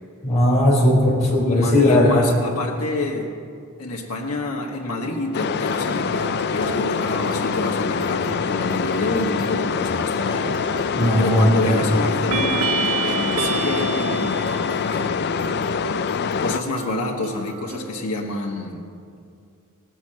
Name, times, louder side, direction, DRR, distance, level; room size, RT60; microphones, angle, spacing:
voice 1, 0.2-2.3 10.9-12.0, left 1 dB, 30° left, -4 dB, 3.8 m, -17 dB
voice 2, 1.4-3.3 3.8-10.5 11.2-12.7 13.0-15.6 16.4-18.8, left 2 dB, 85° left, -1 dB, 1.4 m, -27 dB
sound 1, 5.3-16.6, left 6 dB, 50° left, 0.4 m, -24 dB
sound 2, 5.8-17.9, right 2 dB, 40° right, 1.8 m, -37 dB
sound 3, 10.6-11.1 12.3-15.1, right 5 dB, 80° right, 0.8 m, -27 dB
18.0 x 6.2 x 7.5 m, 2.4 s
head